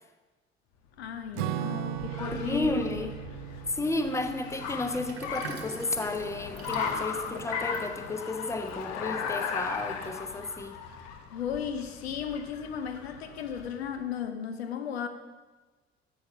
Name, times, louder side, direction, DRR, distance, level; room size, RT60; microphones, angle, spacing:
voice 1, 1.0-3.1 11.3-15.1, left 8 dB, 75° left, 0.9 m, -35 dB
Car, 1.0-13.9, left 6 dB, 60° left, 1.2 m, -37 dB
Acoustic guitar / Strum, 1.3-6.1, right 16 dB, 60° right, 0.5 m, -38 dB
voice 2, 2.2-3.1 3.7-10.8, left 2 dB, 10° left, 1.0 m, -32 dB
Sink (filling or washing), 4.5-9.3, right 4 dB, 80° right, 1.0 m, -45 dB
13.5 x 7.7 x 5.0 m
figure-of-eight pair, 50°, 32 cm